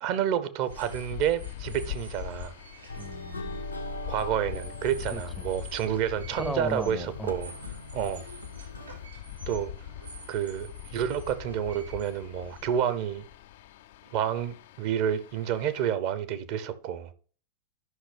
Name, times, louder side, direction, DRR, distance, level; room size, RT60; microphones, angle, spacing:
voice 1, 0.0-2.6 4.1-7.5 7.9-8.2 9.5-9.7 10.3-13.2 14.1-17.1, right 9 dB, 45° right, 0.7 m, -29 dB
sound 1, 0.6-13.3, right 4 dB, 70° right, 4.1 m, -50 dB
sound 2, 0.7-15.9, left 12 dB, 55° left, 0.3 m, -42 dB
sound 3, 2.9-9.1, left 1 dB, 85° left, 0.8 m, -41 dB
voice 2, 3.0-3.6 5.1-5.5 6.3-7.3, left 1 dB, 5° left, 0.5 m, -36 dB
12.5 x 5.7 x 3.4 m
figure-of-eight pair, 90°, 0 cm